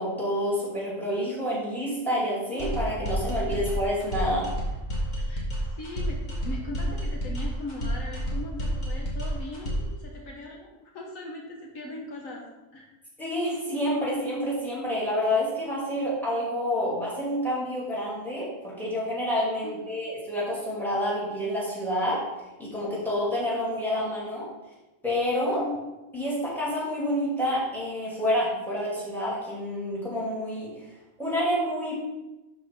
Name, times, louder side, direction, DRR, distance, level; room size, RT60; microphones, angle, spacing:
voice 1, 0.0-4.5 13.2-22.2 22.6-24.5 25.0-25.6 26.1-30.7 31.2-32.0, equal, ahead, -7 dB, 2.7 m, -28 dB
sound 1, 2.6-10.0, equal, 35° left, 1.6 m, -30 dB
voice 2, 5.8-12.4 12.7-12.9 19.6-20.0 25.5-25.8, left 2 dB, 75° left, 0 dB, 1.5 m, -39 dB
11.5 x 4.2 x 3.5 m, 1.0 s
omnidirectional pair, 1.4 m